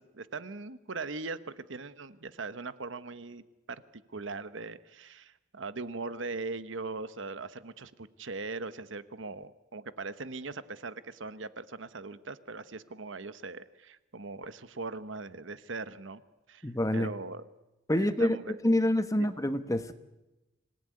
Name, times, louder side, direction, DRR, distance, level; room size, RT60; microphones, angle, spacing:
voice 1, 0.0-16.2 16.5-17.4 17.9-18.6 19.2-19.3, right 3 dB, 70° right, 13 dB, 1.1 m, -40 dB
voice 2, 16.6-17.1 17.9-20.0, left 1 dB, 15° left, 10 dB, 1.2 m, -27 dB
26.0 x 18.5 x 9.7 m, 1.0 s
head